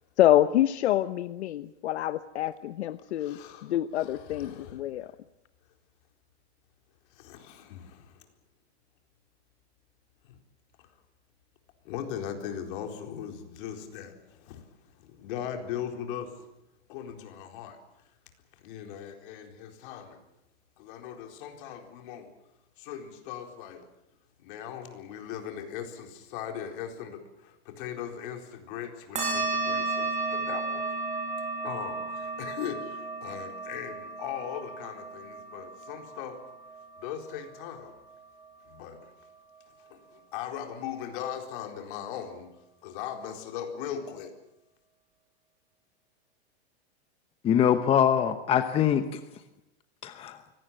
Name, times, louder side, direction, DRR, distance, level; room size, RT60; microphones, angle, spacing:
voice 1, 0.2-5.1, left 13 dB, 75° left, 12 dB, 1.0 m, -26 dB
voice 2, 3.2-5.2 7.1-8.3 10.2-10.4 11.8-14.7 15.0-16.3 16.9-17.8 18.6-20.2 20.8-22.3 22.8-23.9 24.4-30.8 31.6-36.4 37.0-37.9 38.7-39.1 39.9-44.4, left 9 dB, 50° left, 4 dB, 4.3 m, -39 dB
sound 1, 29.2-38.1, right 3 dB, 20° right, 7.7 m, -34 dB
voice 3, 47.4-49.2 50.0-50.4, left 9 dB, 15° left, 9 dB, 1.0 m, -23 dB
24.5 x 18.0 x 8.9 m, 0.87 s
supercardioid pair, 155°, 34 cm